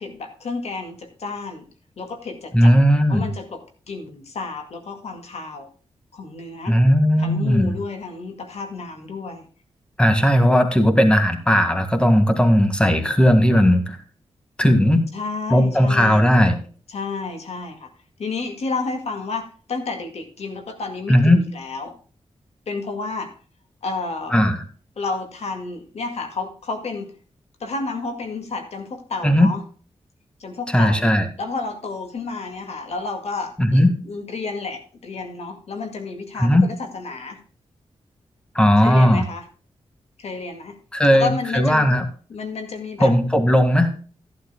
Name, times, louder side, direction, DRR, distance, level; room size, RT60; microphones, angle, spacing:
voice 1, 0.0-1.7 2.0-2.7 3.1-5.7 6.1-6.8 7.2-9.5 15.1-16.3 16.9-17.9 18.2-22.0 22.7-23.3 23.8-24.4 25.0-27.2 27.6-29.6 30.4-31.1 31.4-37.4 38.8-39.5 40.2-40.8 41.1-41.9 42.3-43.1, left 4 dB, 75° left, 5 dB, 2.0 m, -31 dB
voice 2, 2.5-3.3 6.7-7.8 10.0-14.0 14.6-15.1 15.5-16.6 21.1-21.4 24.3-24.6 29.2-29.5 30.7-31.3 33.6-33.9 36.4-36.7 38.6-39.3 40.9-42.1 43.0-43.9, equal, 10° left, 7 dB, 1.9 m, -16 dB
14.5 x 11.5 x 2.2 m, 0.40 s
wide cardioid pair, 95°, 11 cm